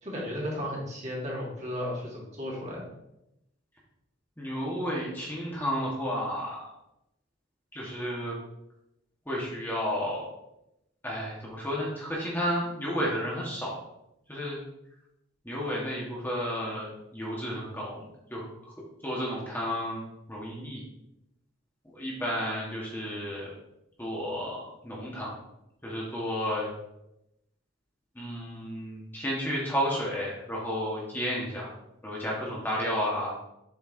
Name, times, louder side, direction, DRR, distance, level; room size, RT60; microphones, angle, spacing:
voice 1, 0.0-2.8, equal, 35° right, -4 dB, 2.3 m, -34 dB
voice 2, 4.4-6.7 7.7-8.3 9.3-10.3 11.0-13.8 14.3-14.6 15.4-18.0 18.3-18.4 19.0-20.0 20.3-20.8 21.9-23.5 24.0-25.3 25.8-26.7 28.1-31.7 32.0-33.3, equal, 10° left, -5 dB, 1.5 m, -32 dB
7.4 x 4.6 x 4.4 m, 0.85 s
head